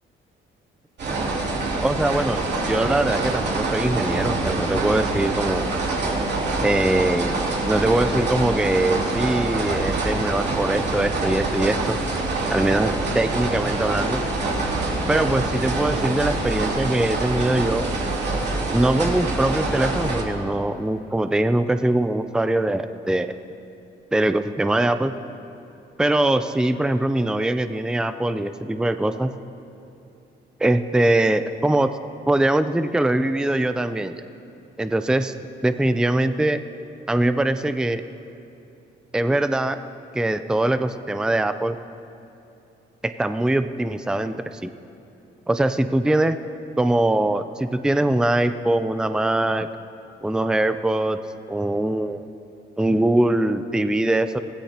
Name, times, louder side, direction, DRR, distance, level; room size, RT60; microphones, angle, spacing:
sound 1, 1.0-20.2, right 2 dB, 60° right, 2.7 m, -25 dB
voice 1, 1.8-5.7 6.6-7.4 7.7-12.0 12.5-14.2 15.1-17.9 18.7-23.3 24.1-25.1 26.0-29.3 30.6-32.0 32.3-34.2 34.8-35.3 35.6-36.6 37.1-38.0 39.1-39.8 40.1-41.8 43.0-44.7 45.5-46.4 46.8-49.7 50.2-51.2 51.5-52.2 52.8-54.4, right 1 dB, 5° right, 10 dB, 0.5 m, -22 dB
23.0 x 16.0 x 2.9 m, 2.7 s
cardioid pair, 90°, 20 cm